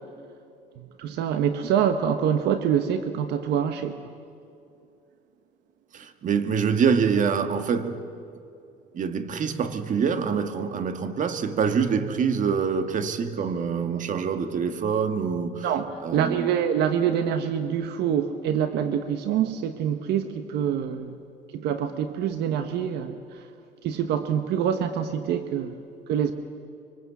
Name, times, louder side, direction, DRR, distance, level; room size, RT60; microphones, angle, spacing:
voice 1, 1.0-4.0 15.6-21.1 21.5-23.4 23.8-25.8 26.1-26.3, right 8 dB, 80° right, 1.2 m, -25 dB
voice 2, 5.9-8.0 8.9-15.7 16.0-16.5, right 6 dB, 50° right, 1.8 m, -25 dB
25.5 x 24.5 x 8.4 m
cardioid pair, 110°, 17 cm